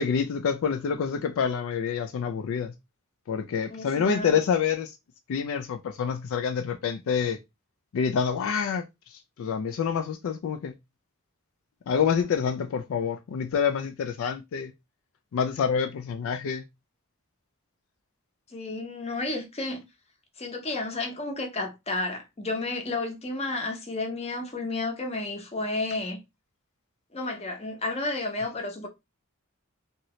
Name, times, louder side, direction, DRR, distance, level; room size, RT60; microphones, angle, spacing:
voice 1, 0.0-2.7 3.3-5.0 5.3-7.4 7.9-10.7 11.9-14.7 15.3-16.6, left 6 dB, 65° left, 0.3 m, -27 dB
voice 2, 3.7-4.4 18.5-19.8 20.4-26.2 27.1-28.9, left 2 dB, 30° left, 0.7 m, -32 dB
2.8 x 2.7 x 3.0 m
head